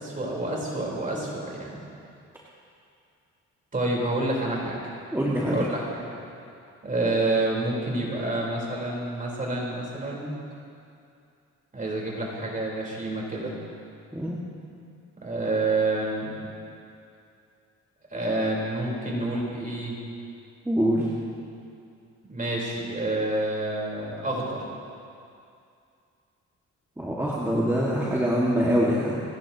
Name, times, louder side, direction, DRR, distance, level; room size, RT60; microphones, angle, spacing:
voice 1, 0.0-1.8 3.7-4.8 5.5-6.1 6.8-10.3 11.7-13.5 15.2-16.3 18.1-20.0 22.3-24.6, right 2 dB, 25° right, -3 dB, 4.3 m, -28 dB
voice 2, 5.1-5.6 14.1-14.4 20.6-21.1 27.0-29.2, equal, 10° right, -6 dB, 2.0 m, -24 dB
29.5 x 10.5 x 3.0 m, 2.5 s
cardioid pair, 90°, 30 cm